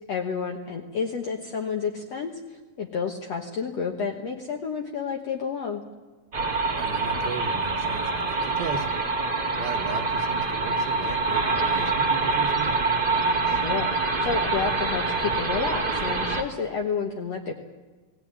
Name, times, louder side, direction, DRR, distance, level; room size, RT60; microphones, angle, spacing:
voice 1, 0.1-5.8 13.5-13.9 14.2-17.5, left 5 dB, 60° left, 2 dB, 2.0 m, -30 dB
sound 1, 6.3-16.4, right 3 dB, 25° right, 1.1 m, -25 dB
voice 2, 6.8-9.1 9.5-12.8, right 6 dB, 80° right, 1 dB, 2.8 m, -36 dB
20.5 x 17.5 x 9.7 m, 1.3 s
omnidirectional pair, 4.2 m